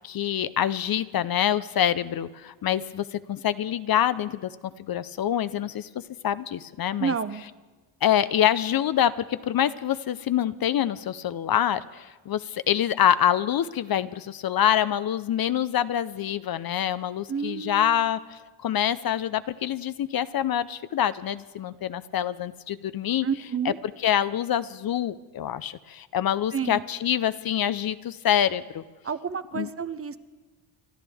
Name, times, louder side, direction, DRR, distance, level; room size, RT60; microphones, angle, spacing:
voice 1, 0.0-4.5 4.9-5.9 6.2-7.1 8.0-23.3 24.0-28.8 29.5-29.7, left 10 dB, 45° left, 14 dB, 0.6 m, -26 dB
voice 2, 7.0-7.4 17.3-18.0 23.2-23.8 26.5-26.8 29.0-30.2, right 6 dB, 30° right, 13 dB, 0.6 m, -30 dB
28.5 x 12.0 x 3.5 m, 1.3 s
cardioid pair, 90°, 50 cm